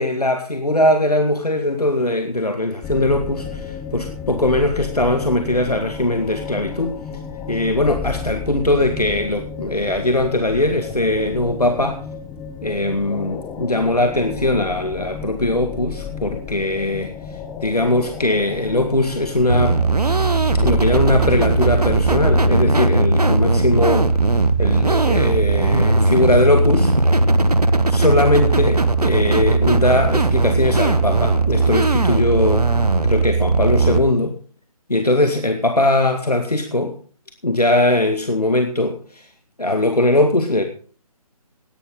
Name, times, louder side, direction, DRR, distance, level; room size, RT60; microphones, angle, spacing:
voice 1, 0.0-7.0 7.5-12.0 12.6-17.1 17.6-19.8 20.6-26.9 27.9-32.7 33.0-34.4 34.9-36.9 37.4-39.3 39.6-40.6, left 1 dB, 85° left, 6 dB, 2.0 m, -20 dB
sound 1, 2.8-22.6, left 7 dB, 5° left, 0.5 m, -32 dB
sound 2, 19.5-34.0, right 3 dB, 85° right, 1.2 m, -18 dB
18.0 x 11.0 x 3.8 m, 0.41 s
figure-of-eight pair, 145°, 19 cm